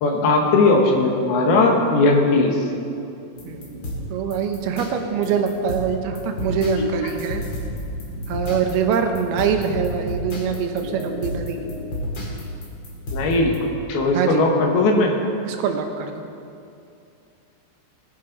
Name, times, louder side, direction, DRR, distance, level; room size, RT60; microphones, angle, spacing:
voice 1, 0.0-2.6 6.8-7.1 13.1-13.6 13.9-15.1, left 3 dB, 80° left, 1 dB, 3.2 m, -18 dB
sound 1, 3.3-13.6, equal, 40° left, 1.8 m, -32 dB
voice 2, 3.4-3.8 4.1-7.4 8.3-11.6 14.1-14.4 15.5-16.2, right 6 dB, 80° right, 5 dB, 2.8 m, -24 dB
19.0 x 9.4 x 4.0 m, 2.5 s
omnidirectional pair, 4.5 m